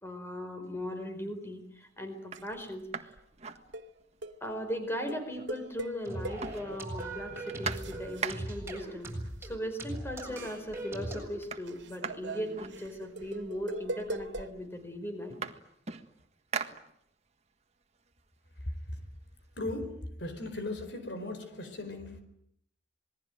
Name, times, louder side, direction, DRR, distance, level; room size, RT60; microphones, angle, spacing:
voice 1, 0.0-3.1 4.4-9.1 9.4-15.4, equal, 15° left, 6 dB, 4.6 m, -38 dB
sound 1, 0.8-1.2 1.7-1.8 2.2-4.3 4.6-4.7 4.9-5.8 6.0-8.8 9.7-9.8 10.2-10.7 10.9-13.4 14.2-14.3 14.6-17.4 17.8-19.5, right 5 dB, 35° right, 1.6 m, -42 dB
sound 2, 2.3-2.6 3.2-3.3 3.7-3.9 4.2-4.4 5.1-6.6 7.0-7.1 7.6-9.5 9.8-14.5, right 1 dB, 75° right, 2.2 m, -42 dB
sound 3, 6.1-11.3, right 1 dB, 15° right, 7.9 m, -40 dB
voice 2, 19.6-22.2, left 2 dB, 70° left, 8 dB, 4.6 m, -38 dB
27.0 x 21.0 x 9.2 m, 0.72 s
head